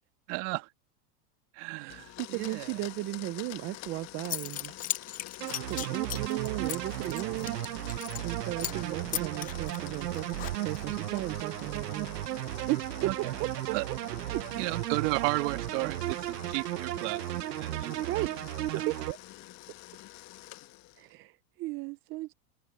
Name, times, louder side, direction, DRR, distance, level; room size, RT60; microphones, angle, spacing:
voice 1, 0.3-0.7 1.5-2.7 8.3-8.6 13.0-13.1 13.7-13.8 14.6-18.1, right 25 dB, 50° right, 2.1 m, -33 dB
voice 2, 1.8-4.8 5.7-7.6 8.2-12.1 12.7-14.0 14.3-14.4 17.7-18.4 18.7-19.2 21.0-22.3, right 18 dB, 30° right, 0.5 m, -36 dB
Domestic sounds home sounds, 1.9-21.1, left 17 dB, 35° left, 1.2 m, -47 dB
Zipper (clothing) / Coin (dropping), 3.9-4.0 4.2-8.3 8.6-8.8 9.1-10.9, left 13 dB, 20° left, 0.5 m, -37 dB
sound 1, 5.4-19.1, right 15 dB, 90° right, 0.9 m, -35 dB
open air
supercardioid pair, 140°, 47 cm